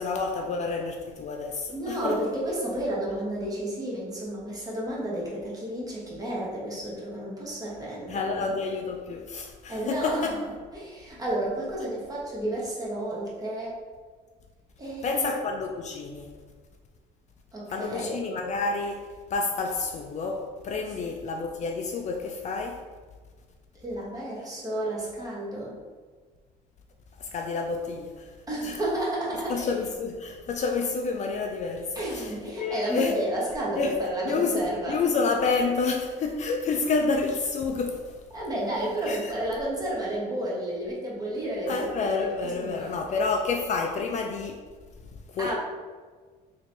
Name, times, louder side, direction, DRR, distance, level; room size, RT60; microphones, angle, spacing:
voice 1, 0.0-2.2 8.1-10.4 15.0-16.3 17.7-22.8 27.2-28.3 28.6-28.8 29.5-33.2 33.8-34.0 34.3-38.2 39.1-39.3 41.7-44.6 45.3-45.5, left 4 dB, 45° left, 0.4 m, -29 dB
voice 2, 1.7-8.5 9.7-10.4 10.7-13.8 14.8-15.3 17.5-18.2 23.8-25.8 28.5-29.7 31.9-34.9 38.3-43.0 45.4-45.5, right 1 dB, 20° right, 1.3 m, -31 dB
3.0 x 2.8 x 4.3 m
cardioid pair, 110°, 17 cm